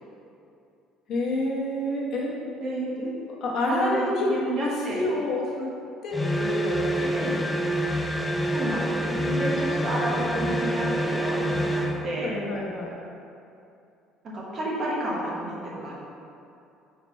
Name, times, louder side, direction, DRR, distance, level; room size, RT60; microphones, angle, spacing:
voice 1, 1.1-2.4 3.0-4.3 4.6-5.7 6.0-7.1 9.1-9.7 12.2-12.9, left 2 dB, 45° left, -3 dB, 1.1 m, -29 dB
voice 2, 3.7-5.0 7.1-7.4 8.5-12.3 14.3-15.9, right 1 dB, 35° right, -5 dB, 1.2 m, -30 dB
sound 1, 6.1-12.1, equal, 5° left, 0.3 m, -27 dB
4.4 x 4.0 x 5.3 m, 2.6 s
cardioid pair, 160°, 0 cm